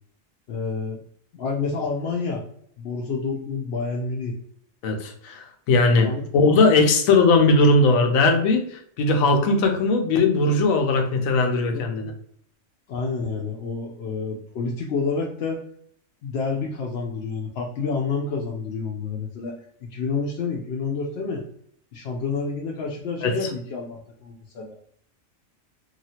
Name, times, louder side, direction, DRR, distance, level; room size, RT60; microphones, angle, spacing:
voice 1, 0.5-1.0 1.3-2.4 2.8-4.3 6.0-6.2 11.7-11.8 12.9-15.6 16.2-19.6 19.9-21.4 21.9-24.8, left 4 dB, 65° left, -2 dB, 0.7 m, -29 dB
voice 2, 4.8-12.1 23.2-23.3, left 3 dB, 80° left, 5 dB, 1.0 m, -19 dB
2.9 x 2.3 x 2.7 m, 0.66 s
omnidirectional pair, 1.4 m